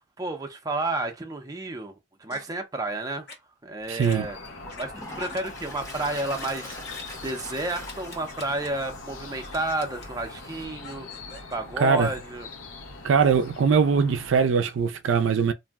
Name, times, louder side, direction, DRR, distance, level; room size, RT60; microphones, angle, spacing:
voice 1, 0.2-3.3 3.6-4.4 4.8-6.7 7.2-11.1 11.5-12.5, right 2 dB, 20° right, 0.5 m, -31 dB
sound 1, 2.3-2.5 3.3-3.4 4.0-4.2 4.7-4.8 5.2-5.4 5.8-5.9 6.3-7.0 7.8-8.7 9.4-10.1 10.8-11.5, left 3 dB, 55° left, 1.0 m, -43 dB
Toilet flush, 3.8-3.9 4.5-10.7, left 2 dB, 15° left, 0.7 m, -43 dB
voice 2, 3.9-4.3 11.8-12.1 13.0-15.5, right 6 dB, 75° right, 0.4 m, -21 dB
sound 2, 4.0-14.5, left 2 dB, 90° left, 0.7 m, -42 dB
2.6 x 2.1 x 3.4 m
head